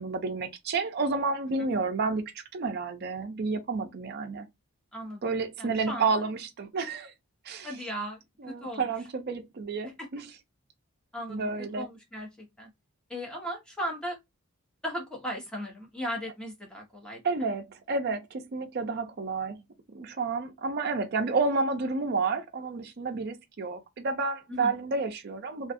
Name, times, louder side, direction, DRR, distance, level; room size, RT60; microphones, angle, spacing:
voice 1, 0.0-2.2 2.5-4.5 5.2-7.1 7.4-7.7 8.4-10.3 11.3-11.9 17.2-19.6 19.9-25.7, right 4 dB, 45° right, 0.4 m, -30 dB
voice 2, 5.6-6.1 7.6-8.2 8.6-8.8 10.0-10.1 11.1-12.7 13.1-14.2 14.8-17.2 24.5-24.7, equal, 5° left, 0.8 m, -36 dB
2.4 x 2.3 x 2.6 m
head